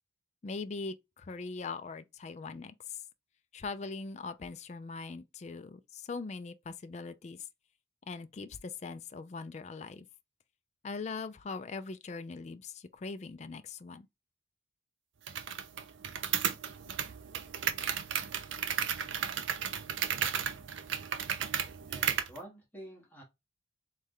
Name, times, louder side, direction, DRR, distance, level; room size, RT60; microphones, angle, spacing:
voice 1, 0.4-3.0 3.5-7.4 8.1-10.1 10.8-14.1, left 4 dB, 35° left, 0.3 m, -41 dB
sound 1, 15.3-22.4, right 8 dB, 75° right, 0.6 m, -34 dB
voice 2, 21.9-23.2, right 1 dB, 10° left, 1.5 m, -48 dB
3.2 x 3.2 x 3.6 m
head